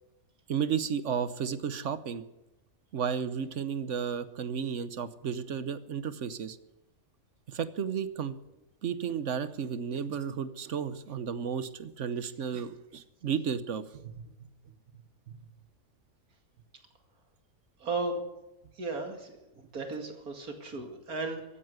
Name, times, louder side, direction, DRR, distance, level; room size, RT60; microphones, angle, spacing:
voice 1, 0.5-2.2 2.9-6.6 7.5-8.4 8.8-14.3 15.3-15.4, right 7 dB, 60° right, 13 dB, 1.2 m, -33 dB
voice 2, 17.8-18.2 18.8-19.4 19.7-21.4, right 3 dB, 90° right, 4 dB, 2.8 m, -35 dB
15.5 x 9.8 x 8.0 m, 0.95 s
omnidirectional pair, 1.5 m